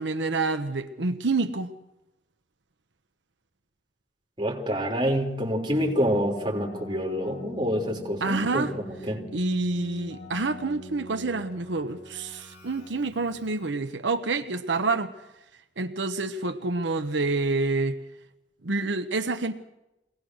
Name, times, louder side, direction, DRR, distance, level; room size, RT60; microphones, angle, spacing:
voice 1, 0.0-1.7 8.2-8.8 9.3-15.2 15.5-18.0 18.6-19.5, right 3 dB, 80° right, 1.0 m, -28 dB
voice 2, 4.4-9.2, equal, 25° right, 3.6 m, -27 dB
Keyboard (musical), 5.7-13.8, left 1 dB, 70° left, 4.1 m, -44 dB
23.5 x 18.5 x 6.3 m
head